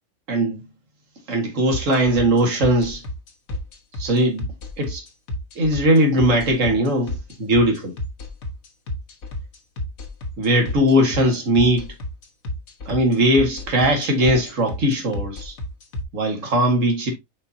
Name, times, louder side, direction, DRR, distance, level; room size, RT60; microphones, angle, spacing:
voice 1, 0.3-0.7 1.3-3.0 4.0-4.5 4.8-5.0 5.6-7.9 10.4-11.9 12.9-15.5 16.1-17.1, equal, 65° right, 2.2 m, -19 dB
sound 1, 1.7-16.0, left 1 dB, 85° left, 1.8 m, -30 dB
10.0 x 4.2 x 2.7 m
omnidirectional pair, 1.4 m